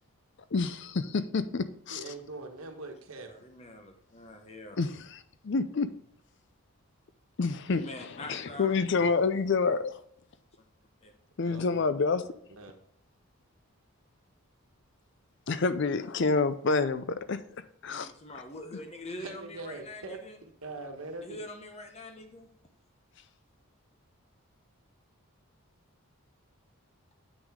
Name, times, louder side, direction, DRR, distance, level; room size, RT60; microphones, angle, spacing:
voice 1, 0.5-2.0 4.8-5.2 5.4-5.9 7.4-7.8 8.3-10.0 11.4-12.3 15.5-17.4 17.8-18.1, left 4 dB, 50° left, 13 dB, 0.5 m, -28 dB
voice 2, 1.9-3.3 11.4-11.9 12.5-12.8 19.2-20.2 20.6-21.4, right 2 dB, 70° right, 4 dB, 1.3 m, -42 dB
voice 3, 3.3-4.8 7.7-9.4 11.0-11.1 17.9-20.4 21.2-22.5, left 1 dB, 30° left, 5 dB, 1.0 m, -44 dB
8.3 x 6.1 x 3.7 m, 0.67 s
head